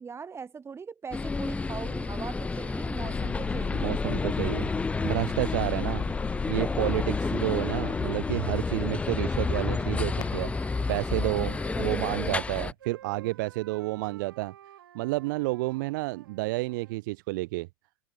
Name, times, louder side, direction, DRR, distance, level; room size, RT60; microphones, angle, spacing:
voice 1, 0.0-4.0 5.7-5.9 7.2-7.5 9.6-10.4 11.6-12.0, right 6 dB, 20° right, 6.0 m, -41 dB
sound 1, 1.1-12.7, left 3 dB, 10° left, 0.5 m, -30 dB
sound 2, 3.0-11.9, left 12 dB, 35° left, 0.9 m, -39 dB
voice 2, 3.7-4.7 5.0-6.0 6.5-14.5 14.9-17.7, right 22 dB, 60° right, 0.4 m, -30 dB
Wind instrument woodwind instrument, 9.0-12.5 12.8-17.0, right 11 dB, 80° right, 3.8 m, -52 dB
open air
hypercardioid pair, 90°, 12 cm